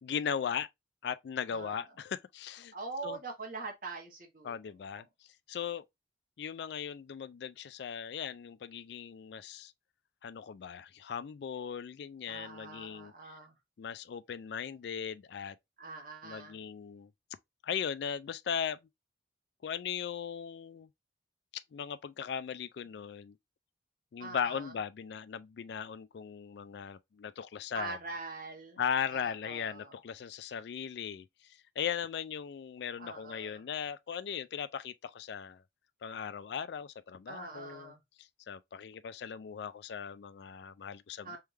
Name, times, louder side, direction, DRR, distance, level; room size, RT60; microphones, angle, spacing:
voice 1, 0.0-0.7 1.0-2.7 3.0-3.2 4.4-5.0 5.5-5.8 6.4-9.7 10.2-13.3 13.8-15.6 16.2-17.1 17.6-18.8 19.6-20.9 21.5-23.4 24.1-28.0 28.8-31.3 31.8-35.6 36.0-37.9 38.2-41.4, left 7 dB, 60° left, 0.3 m, -38 dB
voice 2, 1.5-1.8 2.7-4.6 4.9-5.1 12.3-13.5 15.8-16.6 24.2-24.7 27.7-28.8 29.1-30.0 33.0-33.7 37.3-38.0 41.2-41.4, right 3 dB, 50° right, 1.2 m, -43 dB
3.5 x 3.2 x 3.1 m
head